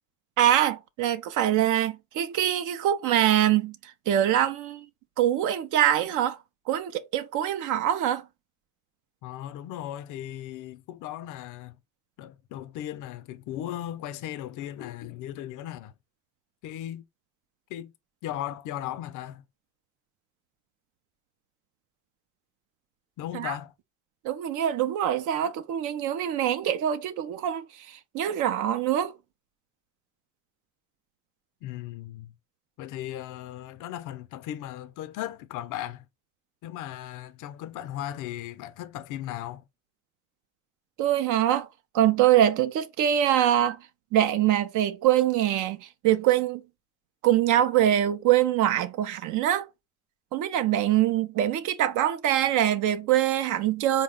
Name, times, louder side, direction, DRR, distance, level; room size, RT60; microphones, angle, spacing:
voice 1, 0.4-4.9 5.2-6.4 6.7-8.2 23.3-23.5 24.2-29.1 41.0-41.7 41.9-43.8 44.1-46.6 47.2-49.7 50.3-54.0, right 11 dB, 90° right, 0.5 m, -24 dB
voice 2, 9.2-11.8 12.2-15.9 16.6-17.0 17.7-17.9 18.2-19.4 23.2-23.7 31.6-32.3 32.8-36.1 36.6-39.6, left 12 dB, 85° left, 0.5 m, -37 dB
4.0 x 2.2 x 3.6 m
cardioid pair, 90°, 30 cm